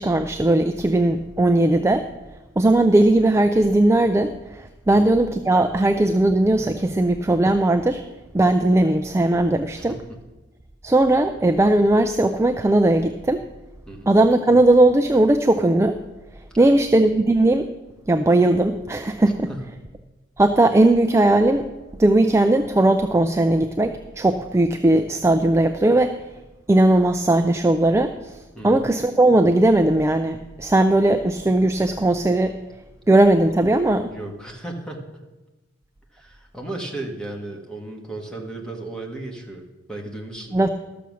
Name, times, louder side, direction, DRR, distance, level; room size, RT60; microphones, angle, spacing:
voice 1, 0.0-2.1 2.6-8.0 8.3-10.0 10.8-13.4 14.1-16.0 16.6-17.7 18.1-19.5 20.4-21.7 22.0-26.2 26.7-28.4 28.6-32.6 33.1-34.1 40.5-40.7, right 1 dB, 15° right, 7 dB, 0.4 m, -18 dB
voice 2, 28.5-28.8 34.1-35.2 36.1-40.7, right 2 dB, 5° left, 1 dB, 1.6 m, -35 dB
13.0 x 7.0 x 6.2 m, 1.1 s
head